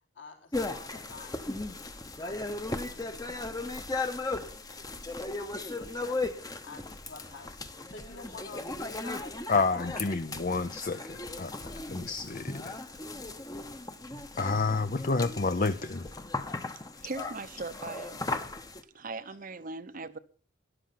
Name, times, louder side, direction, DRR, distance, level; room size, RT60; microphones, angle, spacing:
voice 1, 0.1-1.6 2.2-3.5 4.4-10.0, left 4 dB, 65° left, 3.8 m, -49 dB
sound 1, 0.5-18.8, left 2 dB, 20° left, 1.0 m, -37 dB
voice 2, 9.5-12.8 14.4-16.1, left 3 dB, 40° left, 0.6 m, -29 dB
voice 3, 17.0-18.2 18.9-20.2, right 3 dB, 40° right, 0.8 m, -39 dB
13.0 x 12.0 x 5.9 m
head